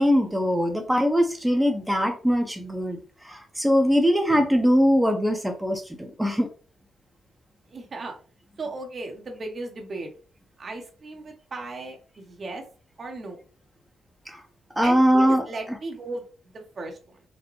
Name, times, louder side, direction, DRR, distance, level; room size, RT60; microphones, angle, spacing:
voice 1, 0.0-6.5 14.3-14.4 14.8-15.4, equal, 10° right, 3 dB, 0.8 m, -22 dB
voice 2, 7.7-8.1 8.6-10.1 10.6-12.6 13.0-13.4 14.8-17.2, right 2 dB, 50° right, 2 dB, 0.8 m, -36 dB
4.0 x 2.1 x 3.1 m, 0.38 s
hypercardioid pair, 45°, 0 cm